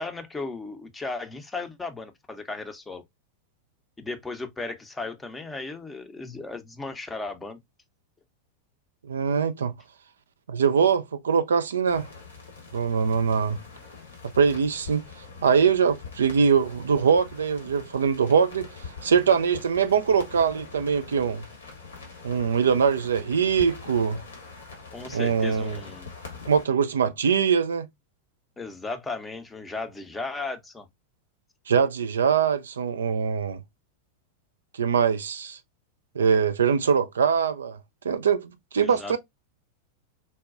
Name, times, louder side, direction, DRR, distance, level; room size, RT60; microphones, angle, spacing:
voice 1, 0.0-3.0 4.0-7.6 24.9-26.1 28.6-30.9 38.8-39.2, left 3 dB, 10° left, 0.6 m, -35 dB
voice 2, 9.0-9.7 10.5-12.1 12.7-13.6 14.4-15.0 15.4-18.7 19.0-21.4 22.2-24.2 25.1-25.8 26.5-27.9 31.7-33.6 34.7-35.6 36.2-37.8 38.0-39.2, right 6 dB, 65° right, 0.3 m, -22 dB
sound 1, 11.9-26.7, left 4 dB, 75° left, 1.2 m, -43 dB
4.0 x 2.2 x 2.4 m
figure-of-eight pair, 90°, 0 cm